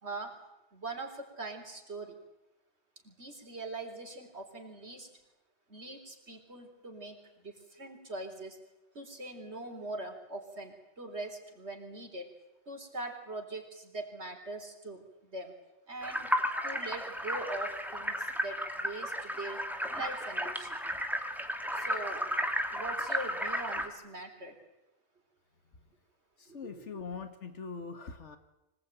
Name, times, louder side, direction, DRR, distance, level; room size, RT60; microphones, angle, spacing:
voice 1, 0.7-2.1 3.0-5.1 5.7-8.6 8.9-12.2 12.7-15.5 15.9-16.3 16.6-19.6 19.9-20.8 21.7-22.3 22.7-24.6 26.5-27.0, right 2 dB, 70° right, 3 dB, 4.3 m, -42 dB
sound 1, 16.0-23.9, equal, ahead, 2.0 m, -34 dB
voice 2, 26.4-28.4, left 5 dB, 85° left, 8 dB, 1.8 m, -42 dB
25.0 x 18.5 x 9.3 m, 0.95 s
omnidirectional pair, 1.2 m